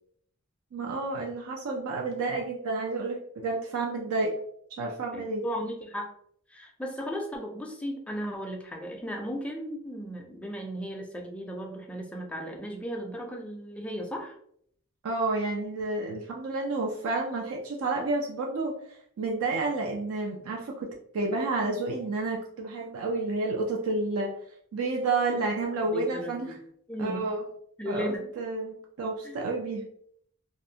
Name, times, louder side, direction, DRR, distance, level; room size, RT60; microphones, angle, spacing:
voice 1, 0.7-4.4 4.7-5.4 15.0-18.7 19.2-24.4 24.7-26.5 27.0-27.4 27.8-29.8, right 3 dB, 70° right, 0 dB, 0.4 m, -30 dB
voice 2, 5.1-6.1 6.5-14.4 25.9-26.6 26.9-27.3 27.8-28.3 29.2-29.4, equal, 5° left, 2 dB, 0.3 m, -36 dB
2.5 x 2.0 x 2.7 m, 0.66 s
head